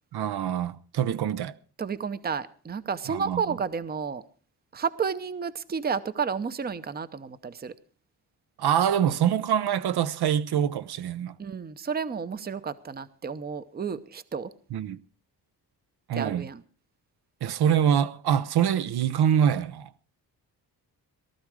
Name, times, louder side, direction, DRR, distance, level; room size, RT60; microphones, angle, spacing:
voice 1, 0.1-1.5 3.1-3.6 8.6-11.3 14.7-15.0 16.1-16.5 17.4-19.9, right 9 dB, 70° right, 0.8 m, -25 dB
voice 2, 1.8-4.2 4.7-7.7 11.4-14.5 16.1-16.6, right 6 dB, 25° right, 0.7 m, -31 dB
18.5 x 13.0 x 4.8 m
cardioid pair, 135°, 41 cm